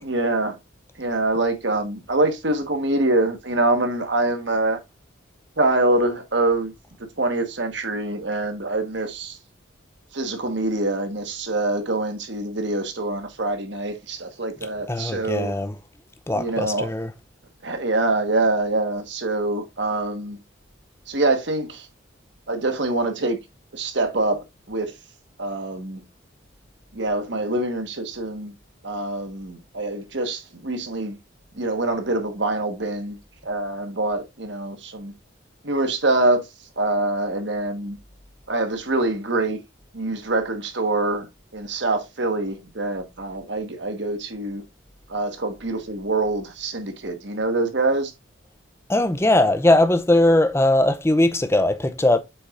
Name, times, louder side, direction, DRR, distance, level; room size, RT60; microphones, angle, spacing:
voice 1, 0.0-0.6 1.0-4.8 5.6-6.7 7.0-9.4 10.1-15.6 16.3-16.9 17.6-20.4 21.1-21.9 22.5-23.4 23.7-24.9 25.4-26.0 26.9-28.5 28.8-31.2 31.5-33.2 33.4-35.1 35.6-36.4 36.8-38.0 38.5-39.6 39.9-44.6 45.1-48.1, right 2 dB, 60° right, 1.4 m, -25 dB
voice 2, 14.9-15.7 16.3-17.1 48.9-52.2, left 1 dB, 10° left, 0.5 m, -19 dB
7.8 x 6.1 x 2.5 m
head